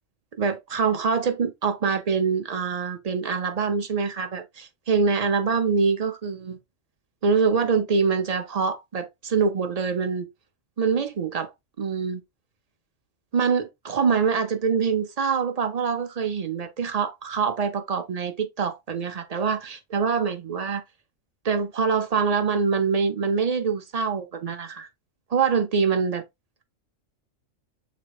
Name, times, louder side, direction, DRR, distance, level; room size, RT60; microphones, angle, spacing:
voice 1, 0.4-6.6 7.2-10.3 10.8-11.5 11.8-12.2 13.3-20.8 21.4-24.9 25.3-26.2, right 5 dB, 50° right, 0.5 m, -24 dB
6.5 x 3.2 x 2.3 m
omnidirectional pair, 1.3 m